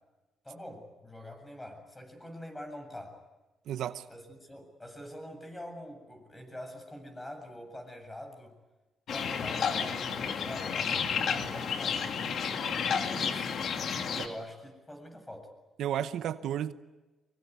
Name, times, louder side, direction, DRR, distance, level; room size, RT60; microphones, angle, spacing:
voice 1, 0.4-3.2 4.1-8.5 9.1-12.4 12.8-13.6 14.0-15.5, left 1 dB, 15° left, 7.7 m, -45 dB
voice 2, 3.7-4.1 14.2-14.3 15.8-16.7, right 10 dB, 75° right, 0.9 m, -32 dB
sound 1, 9.1-14.3, left 6 dB, 60° left, 2.4 m, -31 dB
24.0 x 23.0 x 9.6 m
cardioid pair, 90°, 0 cm